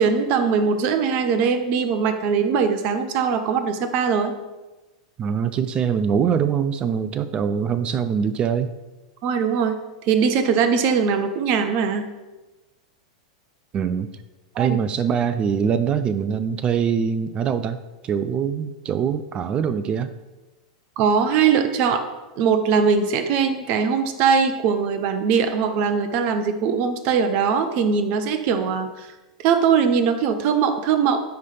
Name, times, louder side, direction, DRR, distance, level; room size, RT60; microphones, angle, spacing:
voice 1, 0.0-4.3 9.2-9.8 10.1-12.1 14.5-14.8 21.0-22.1 22.4-29.1 29.4-31.2, right 6 dB, 50° right, 8 dB, 0.8 m, -21 dB
voice 2, 5.2-8.7 13.7-14.1 14.6-17.8 18.0-20.1, right 7 dB, 30° right, 12 dB, 0.4 m, -23 dB
9.3 x 3.3 x 5.6 m, 1.1 s
hypercardioid pair, 110°, 3 cm